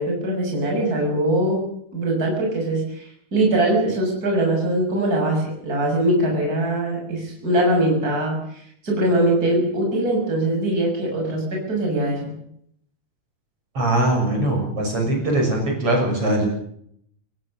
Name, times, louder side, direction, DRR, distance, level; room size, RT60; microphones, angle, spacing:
voice 1, 0.0-1.6 1.9-12.4, right 1 dB, 25° right, 0 dB, 7.1 m, -22 dB
voice 2, 13.7-16.5, right 1 dB, 45° right, 1 dB, 7.6 m, -21 dB
28.5 x 16.5 x 6.7 m, 0.68 s
omnidirectional pair, 3.6 m